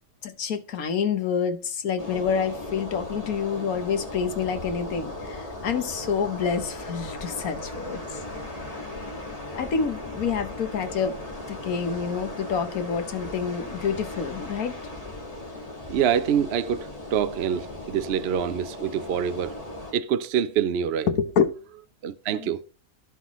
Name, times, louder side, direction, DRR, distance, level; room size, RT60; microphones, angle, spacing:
voice 1, 0.2-8.2 9.5-11.2 11.5-14.7 21.1-21.6 22.3-22.5, left 6 dB, 85° left, 1.5 m, -27 dB
sound 1, 2.0-19.9, left 1 dB, 25° left, 2.0 m, -37 dB
voice 2, 15.9-19.6 19.9-21.1 22.0-22.6, right 8 dB, 60° right, 0.7 m, -26 dB
17.0 x 5.7 x 3.1 m
omnidirectional pair, 1.5 m